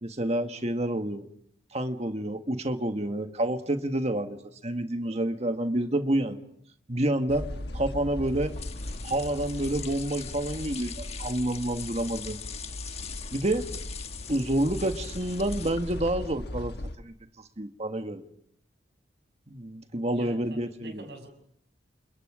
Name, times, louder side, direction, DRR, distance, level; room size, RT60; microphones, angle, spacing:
voice 1, 0.0-1.2 1.7-4.4 4.6-6.4 6.9-7.5 7.7-8.5 9.0-12.4 13.3-13.6 14.3-17.1 17.6-18.2 19.5-21.0, right 1 dB, 35° right, 7 dB, 1.7 m, -28 dB
sound 1, 7.3-17.0, left 1 dB, 60° left, 1.4 m, -39 dB
sound 2, 8.3-16.1, left 7 dB, 35° left, 1.4 m, -42 dB
voice 2, 20.1-21.3, right 1 dB, 65° right, 5 dB, 6.7 m, -45 dB
29.5 x 29.5 x 5.0 m, 0.70 s
head